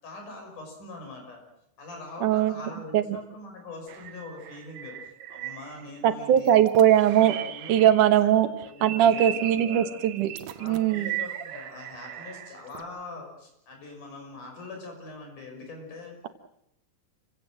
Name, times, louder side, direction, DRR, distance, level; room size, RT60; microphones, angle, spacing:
voice 1, 0.0-1.4 1.8-4.9 5.3-6.6 6.9-7.9 8.2-8.3 8.6-10.0 10.5-16.2, left 2 dB, 90° left, 2 dB, 7.4 m, -43 dB
voice 2, 2.2-2.5 2.9-3.2 6.0-7.3 7.7-8.5 8.8-10.3 10.6-11.1, right 11 dB, 85° right, 9 dB, 2.9 m, -20 dB
sound 1, 3.9-6.0 6.3-8.2 8.6-12.8, right 11 dB, 65° right, 2.2 m, -38 dB
28.5 x 17.0 x 7.6 m, 0.80 s
omnidirectional pair, 3.5 m